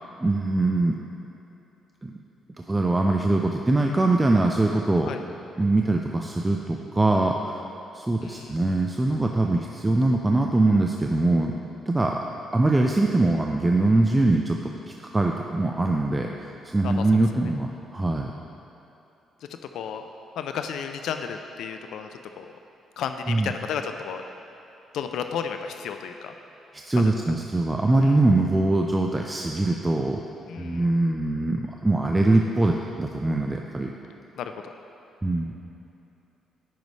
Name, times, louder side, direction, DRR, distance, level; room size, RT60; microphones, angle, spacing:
voice 1, 0.2-1.0 2.0-2.1 2.7-5.1 5.6-7.6 7.9-12.2 12.5-14.6 14.9-18.4 23.3-23.5 26.7-30.2 30.6-33.9 35.2-35.5, right 2 dB, 15° right, 1 dB, 0.4 m, -23 dB
voice 2, 8.2-8.6 16.8-17.2 19.7-20.0 20.4-22.1 22.4-22.5 23.0-24.2 24.9-26.3 27.0-27.1 28.0-28.2 30.5-30.9 34.4-34.7, left 7 dB, 80° left, 7 dB, 0.3 m, -33 dB
10.0 x 5.2 x 3.2 m, 2.9 s
cardioid pair, 90°, 0 cm